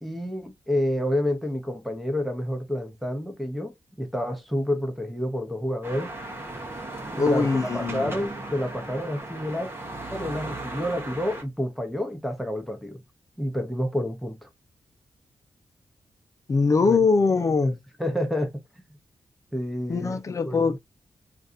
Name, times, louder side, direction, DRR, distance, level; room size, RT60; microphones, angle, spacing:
voice 1, 0.0-6.1 7.1-7.5 7.7-9.7 10.1-13.0 13.4-14.5 16.9-17.0 17.6-17.7 18.0-18.6 19.5-20.2 20.5-20.8, equal, ahead, 0.9 m, -29 dB
sound 1, 5.8-11.4, right 2 dB, 25° right, 1.0 m, -36 dB
voice 2, 7.2-8.2 16.5-17.8 19.9-20.8, left 4 dB, 35° left, 0.6 m, -22 dB
3.9 x 2.6 x 2.7 m
wide cardioid pair, 150°, 9 cm